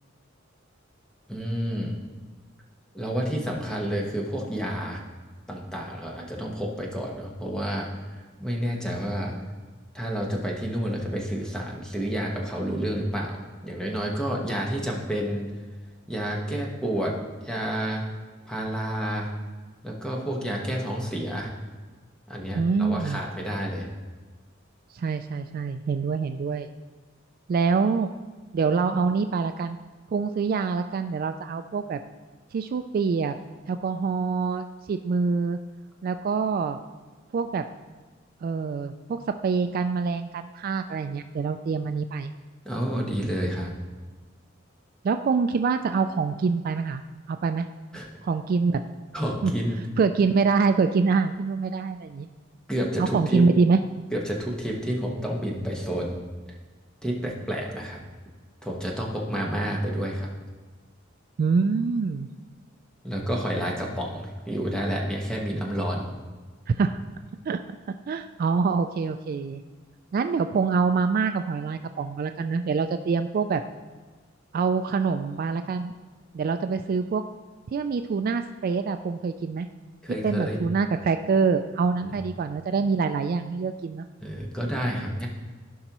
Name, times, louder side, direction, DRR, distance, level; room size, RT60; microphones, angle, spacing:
voice 1, 1.3-2.0 2.9-5.0 5.5-9.4 9.9-15.5 16.1-17.2 17.4-18.0 18.4-19.3 19.8-21.5 22.3-23.9 42.6-43.7 47.9-48.1 49.1-49.8 52.7-53.4 54.1-56.2 57.0-58.0 58.6-60.3 63.0-66.1 80.0-80.6 84.2-85.3, equal, 5° left, -2 dB, 1.3 m, -29 dB
voice 2, 22.6-23.2 24.9-26.7 27.5-28.1 28.5-29.8 30.1-32.0 32.5-33.4 33.7-35.6 36.0-36.8 37.3-37.6 38.4-42.3 45.0-47.0 47.3-47.7 48.2-48.8 49.4-49.5 50.0-52.3 53.0-53.8 61.4-62.3 66.7-67.0 67.5-67.6 68.1-69.6 70.1-73.6 74.5-75.9 76.3-77.2 77.7-79.7 80.2-84.1, right 4 dB, 45° right, 8 dB, 0.3 m, -25 dB
15.5 x 5.4 x 3.0 m, 1.3 s
head